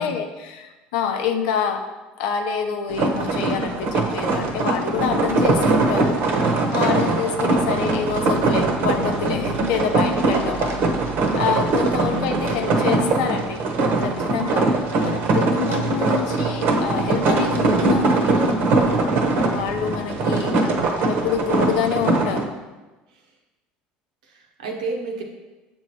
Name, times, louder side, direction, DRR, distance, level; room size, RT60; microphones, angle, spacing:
voice 1, 0.0-1.9 2.2-6.3 6.7-10.8 11.3-13.6 14.0-14.8 15.0-18.6 19.5-20.5 21.1-22.5, left 7 dB, 80° left, 4 dB, 0.6 m, -26 dB
sound 1, 2.9-22.4, right 3 dB, 65° right, 0.9 m, -21 dB
voice 2, 12.1-12.5 15.0-15.4 20.4-20.9 23.1-23.2 24.2-25.2, right 2 dB, 90° right, 2 dB, 0.9 m, -32 dB
7.0 x 3.0 x 4.6 m, 1.2 s
supercardioid pair, 85°, 4 cm